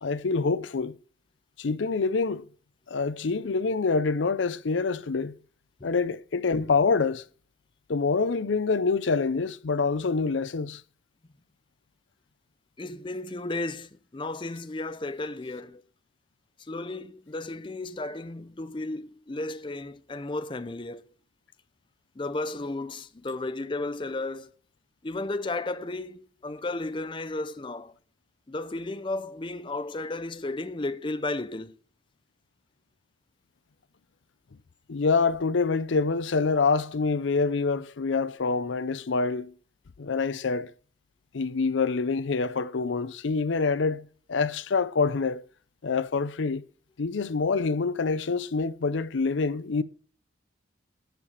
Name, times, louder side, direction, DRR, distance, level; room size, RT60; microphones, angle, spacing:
voice 1, 0.0-0.9 1.6-2.5 2.9-5.3 5.8-7.2 7.9-10.8 34.9-39.5 40.0-40.7 41.3-45.4 45.8-46.6 47.0-49.8, left 4 dB, 75° left, 0.6 m, -26 dB
voice 2, 12.8-15.8 16.6-21.1 22.2-24.5 25.0-27.9 28.5-31.8, left 2 dB, 25° left, 0.5 m, -34 dB
13.0 x 4.9 x 8.0 m
head